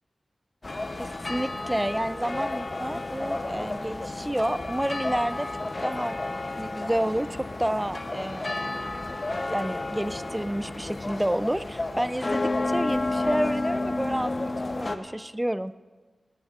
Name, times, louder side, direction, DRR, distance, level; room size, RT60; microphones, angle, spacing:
sound 1, 0.6-15.0, left 2 dB, 40° left, 0.7 m, -31 dB
voice 1, 1.0-5.5 5.8-6.2 6.6-8.8 9.5-14.5 14.8-15.7, right 1 dB, 10° right, 14 dB, 0.3 m, -30 dB
18.0 x 15.0 x 2.4 m, 1.4 s
wide cardioid pair, 90°, 0 cm